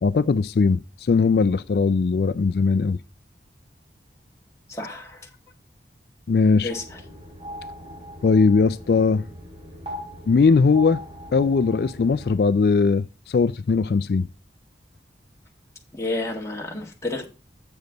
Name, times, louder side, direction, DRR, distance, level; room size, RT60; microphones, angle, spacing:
voice 1, 0.0-3.0 6.3-6.7 8.2-9.2 10.3-11.0 11.3-14.3, left 4 dB, 60° left, 0.4 m, -19 dB
voice 2, 4.7-5.2 6.6-6.8 16.0-17.3, left 2 dB, 15° left, 1.7 m, -30 dB
sound 1, 6.7-12.3, equal, 30° right, 4.3 m, -40 dB
7.9 x 7.2 x 3.9 m
head